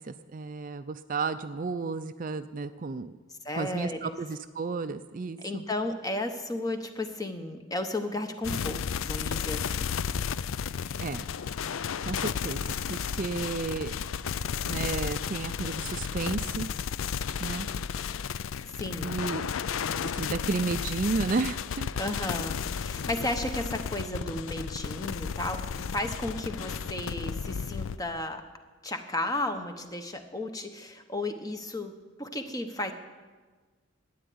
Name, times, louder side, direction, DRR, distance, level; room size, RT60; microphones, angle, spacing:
voice 1, 0.0-3.2 3.5-5.6 11.0-11.3 12.1-12.6 12.9-13.9 14.6-16.7 17.4-17.7 19.0-19.4 19.9-21.9, right 4 dB, 40° right, 10 dB, 0.4 m, -32 dB
voice 2, 3.4-4.1 5.4-9.9 18.8-19.2 22.0-28.4 28.8-31.9 32.2-32.9, left 1 dB, 15° left, 7 dB, 0.9 m, -34 dB
sound 1, 8.4-28.0, left 7 dB, 70° left, 0.4 m, -33 dB
12.5 x 9.4 x 9.5 m, 1.4 s
head